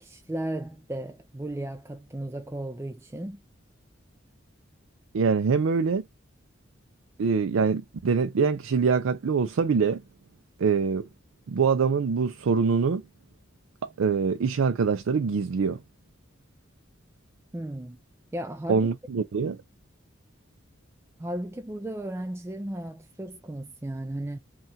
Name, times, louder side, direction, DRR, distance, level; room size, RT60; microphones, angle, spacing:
voice 1, 0.0-3.4 17.5-18.0 18.3-18.9 21.2-24.4, right 1 dB, 10° right, 0.3 m, -35 dB
voice 2, 5.1-6.0 7.2-10.0 10.6-11.0 11.5-13.0 14.0-15.8 18.7-19.6, right 5 dB, 80° right, 0.4 m, -24 dB
5.5 x 2.4 x 2.6 m
head